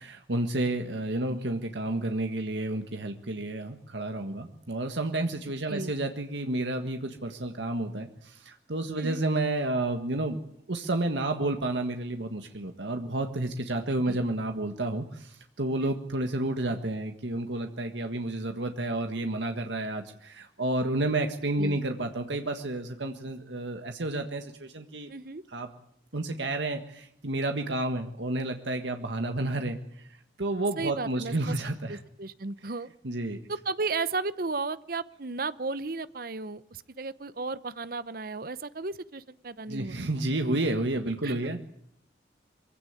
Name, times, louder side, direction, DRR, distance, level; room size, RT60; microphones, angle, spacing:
voice 1, 0.0-10.4 10.7-25.1 25.5-25.7 26.1-29.8 30.4-32.0 33.0-33.4 39.7-41.6, right 2 dB, 85° right, 5 dB, 1.7 m, -30 dB
voice 2, 25.1-25.4 30.8-31.5 31.9-32.9 33.5-40.0 41.2-41.6, right 3 dB, 55° right, 15 dB, 0.8 m, -34 dB
23.0 x 16.5 x 9.7 m, 0.70 s
head